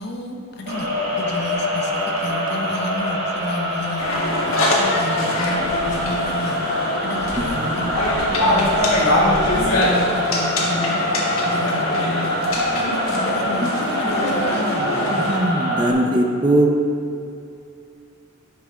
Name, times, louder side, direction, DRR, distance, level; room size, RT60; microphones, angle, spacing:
voice 1, 0.0-6.6 7.0-7.9 8.4-11.0 11.4-15.0, left 1 dB, 50° left, 2 dB, 0.9 m, -31 dB
sound 1, 0.7-15.9, left 1 dB, 50° right, 1.5 m, -25 dB
sound 2, 4.0-15.4, left 1 dB, 85° left, 1.4 m, -23 dB
voice 2, 15.3-16.7, right 1 dB, 20° right, 2 dB, 0.5 m, -19 dB
10.0 x 5.6 x 3.7 m, 2.6 s
head